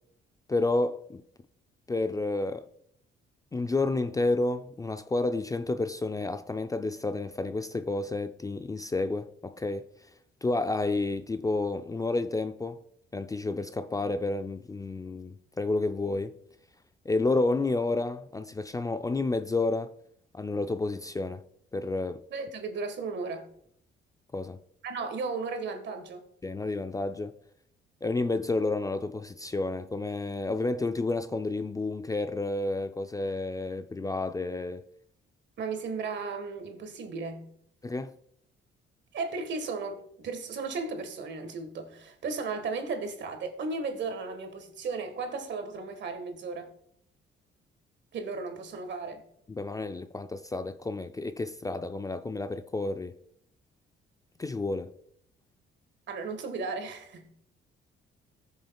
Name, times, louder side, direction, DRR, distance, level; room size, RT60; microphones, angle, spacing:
voice 1, 0.5-1.2 1.9-2.7 3.5-9.9 10.4-12.8 13.1-16.4 17.1-19.9 20.3-21.4 21.7-22.2 24.3-24.6 26.4-27.3 28.0-34.8 37.8-38.2 49.5-53.2 54.4-54.9, left 2 dB, 15° left, 0.4 m, -30 dB
voice 2, 22.3-23.5 24.8-26.2 35.6-37.5 39.1-46.7 48.1-49.2 56.1-57.3, right 4 dB, 65° right, 1.5 m, -35 dB
16.0 x 6.5 x 2.3 m
cardioid pair, 90°, 20 cm